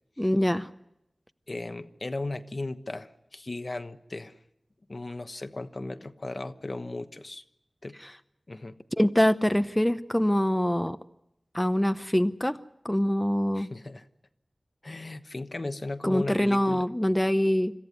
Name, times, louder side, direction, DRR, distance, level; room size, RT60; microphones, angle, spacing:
voice 1, 0.2-0.7 8.0-8.1 9.0-11.0 11.5-12.6 12.8-13.7 16.0-17.7, equal, 15° left, 10 dB, 0.8 m, -24 dB
voice 2, 1.5-4.3 4.9-7.4 7.8-8.0 8.5-8.8 13.5-14.0 14.8-16.9, left 2 dB, 55° left, 9 dB, 1.2 m, -36 dB
26.0 x 14.5 x 9.3 m, 0.86 s
wide cardioid pair, 40°, 0 cm